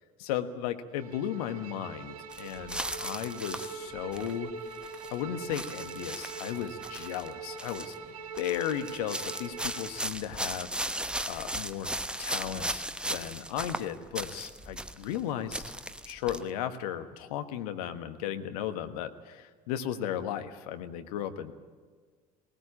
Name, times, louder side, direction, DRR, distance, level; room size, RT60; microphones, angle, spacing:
voice 1, 0.2-4.5 5.1-7.9 8.4-10.7 11.3-11.9 12.2-15.6 16.0-21.5, left 10 dB, 70° left, 9 dB, 1.4 m, -35 dB
Bowed string instrument, 0.9-10.1, right 5 dB, 80° right, 1.6 m, -43 dB
sound 1, 2.3-4.3 4.7-5.1 5.5-7.3 7.6-8.0 8.3-15.2 15.5-16.4, right 1 dB, 5° right, 1.0 m, -37 dB
19.5 x 18.5 x 8.7 m, 1.5 s
hypercardioid pair, 65°, 20 cm